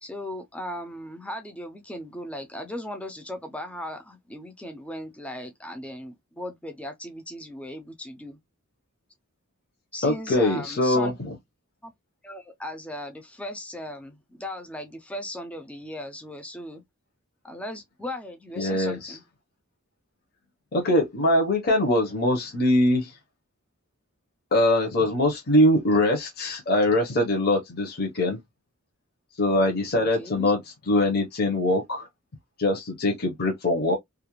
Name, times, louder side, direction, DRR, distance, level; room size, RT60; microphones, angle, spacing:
voice 1, 0.0-8.4 9.9-11.2 11.8-11.9 12.2-16.8 17.4-19.2 29.9-30.5, left 1 dB, 5° left, 0.3 m, -37 dB
voice 2, 10.0-11.3 18.6-19.2 20.7-23.1 24.5-28.4 29.4-30.6 30.9-32.1 32.6-34.0, left 1 dB, 45° left, 0.6 m, -22 dB
2.4 x 2.0 x 2.9 m
head